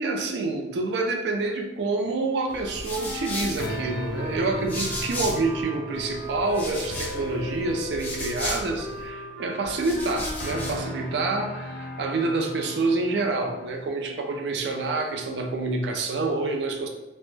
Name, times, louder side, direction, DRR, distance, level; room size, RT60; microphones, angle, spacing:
voice 1, 0.0-16.9, right 3 dB, 80° right, 3 dB, 0.4 m, -27 dB
sound 1, 2.5-5.6 5.9-9.1 9.6-10.9, left 1 dB, 10° left, 0.3 m, -35 dB
sound 2, 2.9-12.1, equal, 60° right, 0.8 m, -39 dB
sound 3, 3.6-13.7, equal, 70° left, 0.4 m, -38 dB
2.1 x 2.0 x 3.1 m, 1.0 s
head